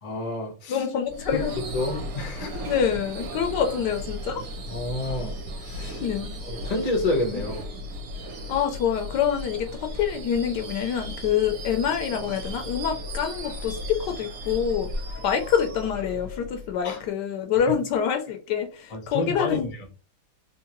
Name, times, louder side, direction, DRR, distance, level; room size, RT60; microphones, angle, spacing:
voice 1, 0.0-0.8 1.3-1.4 1.7-2.7 4.7-6.0 6.5-7.6 16.8-17.0 18.9-19.6, left 2 dB, 50° left, 2 dB, 0.4 m, -29 dB
voice 2, 0.7-1.5 2.7-4.4 6.0-6.3 7.3-7.4 8.5-19.7, left 8 dB, 70° left, 5 dB, 1.1 m, -26 dB
Subway metro underground / Screech, 1.0-17.0, equal, 65° right, 1.4 m, -36 dB
3.6 x 2.8 x 2.9 m, 0.34 s
omnidirectional pair, 2.1 m